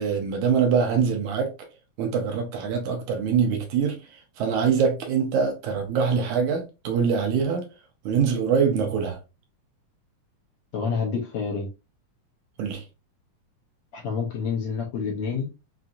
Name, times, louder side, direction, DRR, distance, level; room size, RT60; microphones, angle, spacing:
voice 1, 0.0-1.5 2.0-7.6 8.1-9.2 12.6-12.8, right 6 dB, 75° right, 2.0 m, -24 dB
voice 2, 10.7-11.7 13.9-15.5, left 5 dB, 70° left, 1.8 m, -28 dB
5.7 x 2.5 x 2.5 m
omnidirectional pair, 3.8 m